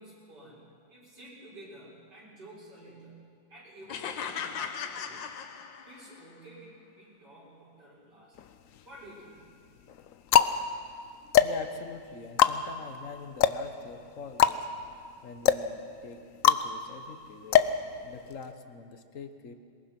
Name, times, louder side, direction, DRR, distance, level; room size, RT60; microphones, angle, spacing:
voice 1, 0.0-5.3 5.8-8.4 8.8-9.4, right 1 dB, 50° right, -6 dB, 7.4 m, -51 dB
sound 1, 3.9-6.2, left 7 dB, 70° left, 1.7 m, -37 dB
sound 2, 8.4-9.1 9.8-18.5, left 9 dB, 85° left, 0.7 m, -26 dB
voice 2, 11.4-14.7 15.2-17.7 18.0-19.5, left 5 dB, 45° left, 7 dB, 1.4 m, -44 dB
22.5 x 21.0 x 6.0 m, 2.4 s
omnidirectional pair, 2.2 m